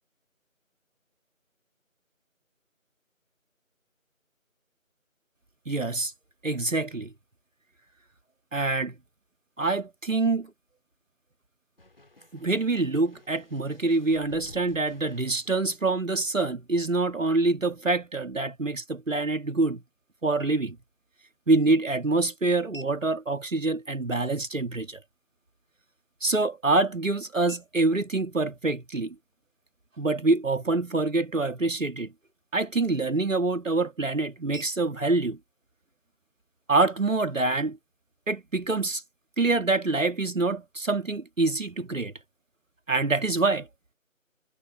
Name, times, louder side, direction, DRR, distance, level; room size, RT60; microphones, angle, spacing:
voice 1, 5.7-6.1 6.4-7.1 8.5-9.0 9.6-10.5 12.3-19.8 20.2-20.8 21.5-25.0 26.2-29.2 30.0-32.1 32.5-35.4 36.7-37.8 38.3-39.0 39.4-42.1 42.9-43.7, right 3 dB, 65° right, 1.9 m, -26 dB
sound 1, 11.8-16.1, left 2 dB, 45° left, 4.1 m, -52 dB
sound 2, 21.0-37.0, right 1 dB, 20° left, 4.6 m, -58 dB
figure-of-eight pair, 170°, 41 cm